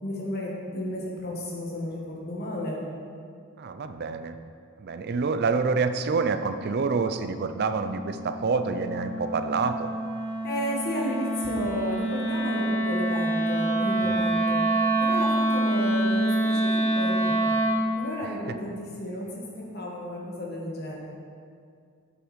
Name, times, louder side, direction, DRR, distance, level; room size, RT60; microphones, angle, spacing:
voice 1, 0.0-2.8 10.4-14.6 15.0-17.4 18.0-19.3 19.7-20.9, left 1 dB, 45° left, -3 dB, 1.9 m, -32 dB
voice 2, 3.6-4.4 4.8-9.9 14.0-14.2, right 4 dB, 50° right, 10 dB, 0.4 m, -27 dB
Wind instrument woodwind instrument, 6.4-17.9, right 1 dB, 10° left, 1.4 m, -27 dB
8.3 x 7.8 x 5.1 m, 2.3 s
head